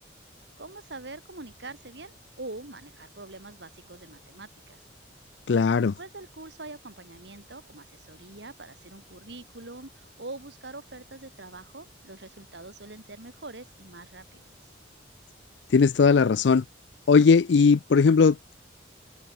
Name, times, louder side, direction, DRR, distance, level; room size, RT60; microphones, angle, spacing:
voice 1, 0.6-4.8 5.5-14.7, right 2 dB, 65° right, 2.5 m, -44 dB
voice 2, 5.5-5.9 15.7-16.6 17.1-18.5, left 5 dB, 70° left, 0.4 m, -19 dB
head